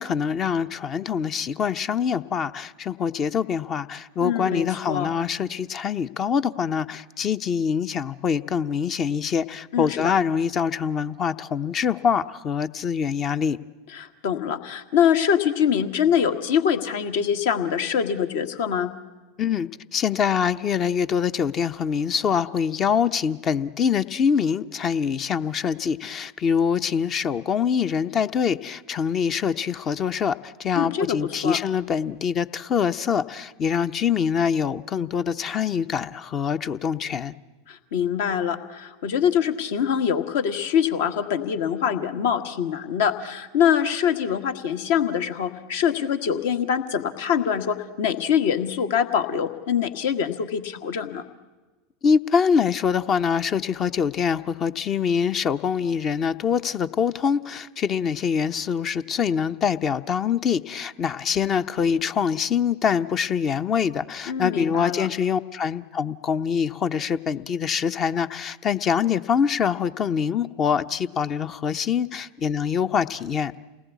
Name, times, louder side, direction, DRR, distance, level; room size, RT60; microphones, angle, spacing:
voice 1, 0.0-13.6 19.4-37.3 52.0-73.5, left 7 dB, 35° left, 12 dB, 0.8 m, -24 dB
voice 2, 4.2-5.1 9.7-10.1 13.9-18.9 30.7-31.6 37.7-51.2 64.3-65.1, left 8 dB, 60° left, 8 dB, 1.6 m, -24 dB
28.5 x 19.5 x 8.3 m, 1.2 s
figure-of-eight pair, 85°, 0 cm